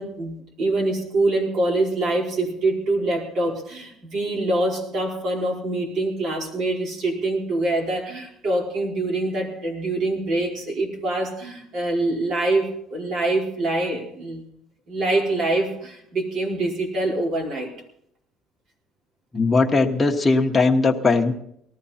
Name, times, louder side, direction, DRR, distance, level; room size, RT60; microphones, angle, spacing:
voice 1, 0.0-14.5 14.9-17.7, right 2 dB, 60° right, -1 dB, 4.6 m, -25 dB
voice 2, 19.3-21.3, left 3 dB, 15° left, 2 dB, 1.4 m, -19 dB
19.0 x 14.0 x 4.3 m, 0.72 s
cardioid pair, 130°, 0 cm